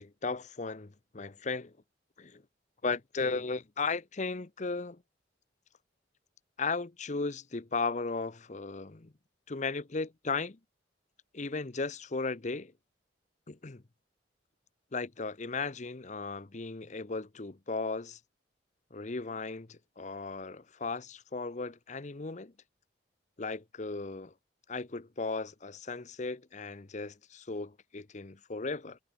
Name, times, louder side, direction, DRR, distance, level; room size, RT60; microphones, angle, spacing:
voice 1, 0.0-1.7 2.2-2.4 2.8-5.0 6.6-9.1 9.5-10.6 11.3-12.7 13.5-13.8 14.9-18.2 18.9-22.5 23.4-24.3 24.7-29.0, left 4 dB, 40° left, 0.8 m, -36 dB
head